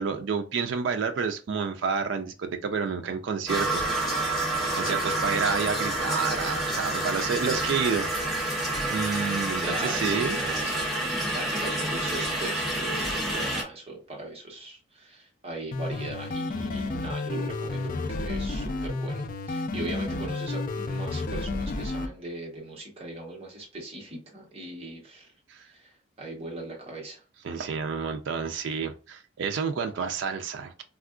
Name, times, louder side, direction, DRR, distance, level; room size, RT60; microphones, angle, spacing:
voice 1, 0.0-4.5 4.7-8.4 8.9-10.4 25.5-25.7 27.4-30.8, right 5 dB, 70° right, 0.3 m, -30 dB
sound 1, 3.5-13.6, right 1 dB, ahead, 0.9 m, -28 dB
voice 2, 4.6-4.9 9.6-25.3 25.6-25.9 26.2-27.2, right 2 dB, 30° right, 1.0 m, -39 dB
sound 2, 15.7-22.1, left 2 dB, 45° left, 0.3 m, -31 dB
3.5 x 2.4 x 2.3 m
head